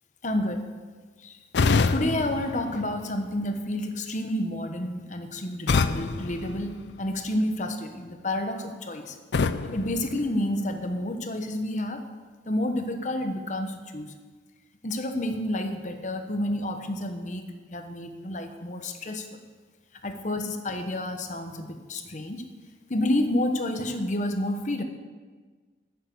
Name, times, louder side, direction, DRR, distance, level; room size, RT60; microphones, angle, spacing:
voice 1, 0.2-0.7 1.2-1.4 1.9-9.1 9.7-12.0 12.5-14.0 14.8-19.2 20.0-22.4 22.9-24.8, left 1 dB, 40° left, 6 dB, 1.1 m, -29 dB
sound 1, 1.5-3.5 5.7-7.4 9.3-10.9, left 4 dB, 70° left, 0.5 m, -28 dB
10.0 x 9.3 x 6.8 m, 1.4 s
head